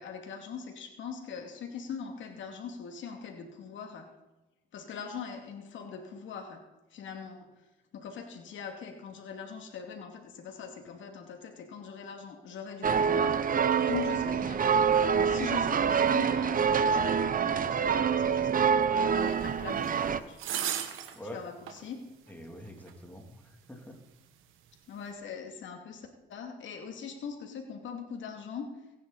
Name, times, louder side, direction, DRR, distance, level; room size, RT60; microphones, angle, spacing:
voice 1, 0.0-4.1 4.7-6.6 6.9-7.5 7.9-13.4 13.8-14.8 15.1-20.5 21.3-22.0 24.9-28.7, left 6 dB, 75° left, 3 dB, 2.6 m, -41 dB
sound 1, 12.8-20.2, right 7 dB, 45° right, 0.9 m, -26 dB
sound 2, 19.8-19.9 20.4-21.2 21.7-21.8 22.9-23.0, right 10 dB, 90° right, 1.6 m, -33 dB
voice 2, 22.3-24.0, equal, 10° left, 1 dB, 3.0 m, -45 dB
22.5 x 10.0 x 4.2 m, 1.0 s
cardioid pair, 90°, 20 cm